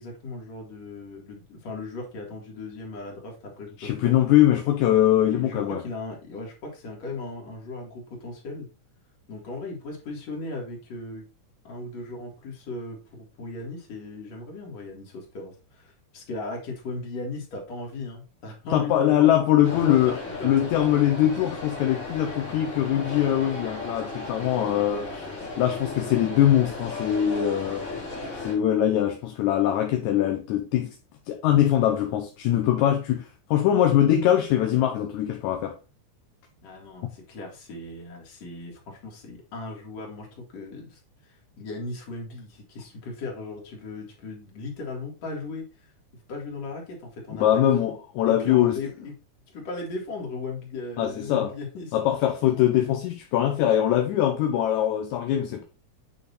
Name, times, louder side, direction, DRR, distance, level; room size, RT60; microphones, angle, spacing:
voice 1, 0.0-4.3 5.2-8.7 9.3-11.3 11.6-19.3 19.7-20.9 36.6-47.6 48.3-49.1 49.5-52.0, left 2 dB, 60° left, 3.1 m, -37 dB
voice 2, 3.8-5.8 18.7-20.2 20.4-27.9 28.4-31.0 31.3-35.8 37.0-37.1 47.4-48.8 51.0-51.5 51.9-55.6, left 11 dB, 75° left, 2.0 m, -22 dB
sound 1, 19.6-28.5, left 3 dB, 30° left, 1.9 m, -35 dB
8.8 x 2.9 x 4.0 m
omnidirectional pair, 3.6 m